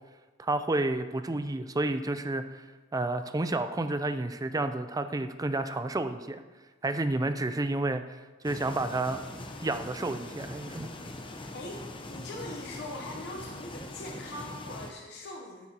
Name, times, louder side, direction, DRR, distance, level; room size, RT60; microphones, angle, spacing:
voice 1, 0.4-2.6 2.9-6.4 6.8-9.2 9.6-10.9, right 2 dB, 20° right, 9 dB, 0.4 m, -30 dB
sound 1, 8.4-14.9, left 1 dB, 25° left, 0.8 m, -42 dB
voice 2, 12.1-15.7, left 1 dB, 60° left, 1 dB, 0.9 m, -41 dB
12.5 x 8.4 x 2.9 m, 1.3 s
head